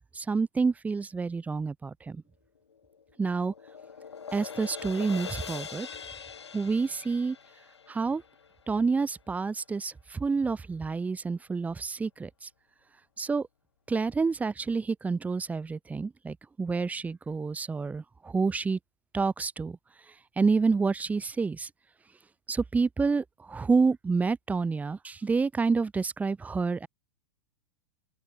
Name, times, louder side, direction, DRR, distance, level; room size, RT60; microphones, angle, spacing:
voice 1, 0.1-2.2 3.2-3.5 4.3-5.9 6.5-7.4 7.9-8.2 8.7-12.5 13.2-13.5 13.9-18.8 19.1-19.8 20.4-21.7 22.5-26.9, right 4 dB, 10° right, 0.6 m, -28 dB
sound 1, 2.7-9.0, left 6 dB, 85° left, 4.8 m, -43 dB
open air
hypercardioid pair, 105°, 14 cm